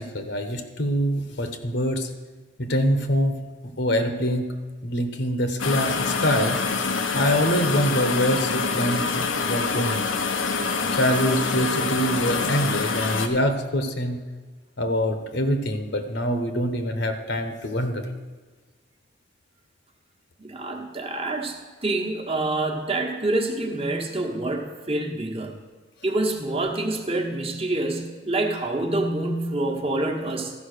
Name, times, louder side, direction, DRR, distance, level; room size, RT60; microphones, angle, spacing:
voice 1, 0.0-2.1 2.6-3.4 3.8-4.5 4.8-6.6 7.1-9.2 9.5-10.0 10.9-14.2 14.8-18.0, equal, 60° left, 7 dB, 1.1 m, -24 dB
sound 1, 5.6-13.3, left 4 dB, 85° left, 0.8 m, -26 dB
voice 2, 20.4-25.6 26.0-30.5, right 2 dB, 30° right, 2 dB, 1.2 m, -27 dB
13.5 x 5.4 x 6.7 m, 1.4 s
head